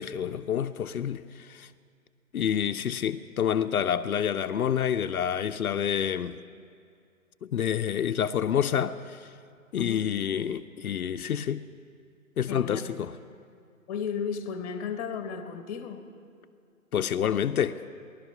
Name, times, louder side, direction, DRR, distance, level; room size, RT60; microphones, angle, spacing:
voice 1, 0.0-1.7 2.3-6.4 7.4-9.2 9.7-11.6 12.4-13.1 16.9-17.8, left 9 dB, 80° left, 0.6 m, -28 dB
voice 2, 9.7-10.1 12.5-12.8 13.9-16.1, left 6 dB, 25° left, 1.1 m, -34 dB
18.5 x 11.5 x 5.8 m
hypercardioid pair, 145°, 43 cm